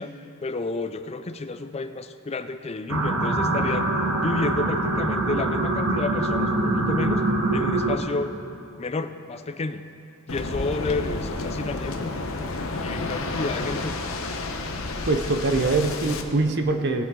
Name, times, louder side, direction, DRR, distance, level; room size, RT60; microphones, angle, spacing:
voice 1, 0.0-3.9 4.2-7.2 7.5-8.3 8.8-9.8 10.3-12.2 12.8-14.0, left 3 dB, 25° left, 9 dB, 0.4 m, -30 dB
sound 1, 2.9-8.0, right 2 dB, 80° right, 1.2 m, -24 dB
Waves surf, 10.3-16.2, left 2 dB, 65° left, 0.8 m, -30 dB
voice 2, 15.1-17.0, right 3 dB, 50° right, 7 dB, 0.7 m, -23 dB
19.0 x 7.8 x 3.7 m, 2.6 s
head